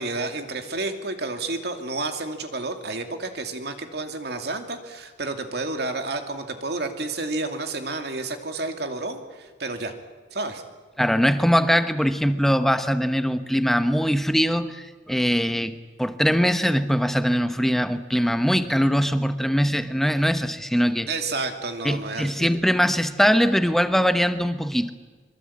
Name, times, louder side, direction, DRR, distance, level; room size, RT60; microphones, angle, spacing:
voice 1, 0.0-9.9 10.3-10.6 21.1-22.5, right 3 dB, 60° right, 6 dB, 2.6 m, -30 dB
voice 2, 11.0-15.7 16.0-21.1 21.8-24.9, equal, ahead, 10 dB, 1.0 m, -22 dB
24.0 x 23.0 x 8.6 m, 1.4 s
head